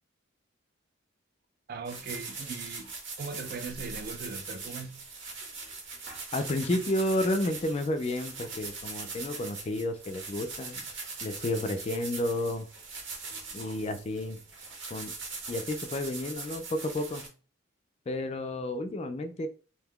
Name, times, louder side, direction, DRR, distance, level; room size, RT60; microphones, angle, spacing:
voice 1, 1.7-2.9 3.2-5.0, right 4 dB, 45° right, 0.3 m, -39 dB
sound 1, 1.8-17.3, right 4 dB, 70° right, 0.9 m, -41 dB
voice 2, 6.3-10.9 11.2-12.7 13.5-14.4 14.9-15.1 15.5-17.3 18.1-19.5, left 1 dB, 30° left, 0.3 m, -31 dB
2.7 x 2.2 x 3.5 m
head